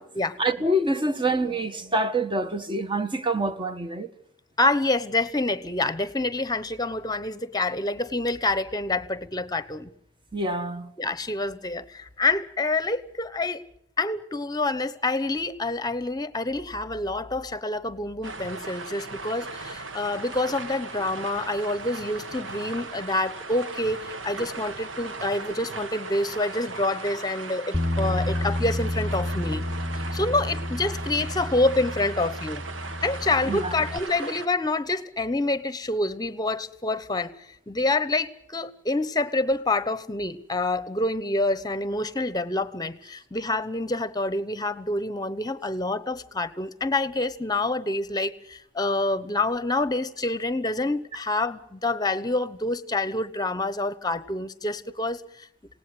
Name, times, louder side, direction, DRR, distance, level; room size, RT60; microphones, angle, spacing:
voice 1, 0.4-4.1 10.3-10.9 33.4-33.7, right 1 dB, 25° right, 1.3 m, -26 dB
voice 2, 4.6-9.9 11.0-13.6 14.0-29.6 30.1-32.6 33.0-37.3 37.7-55.5, left 2 dB, 20° left, 1.0 m, -27 dB
sound 1, 18.2-34.5, right 3 dB, 80° right, 1.4 m, -38 dB
Bass guitar, 27.7-34.0, left 1 dB, 5° right, 1.4 m, -30 dB
27.5 x 18.0 x 7.8 m
head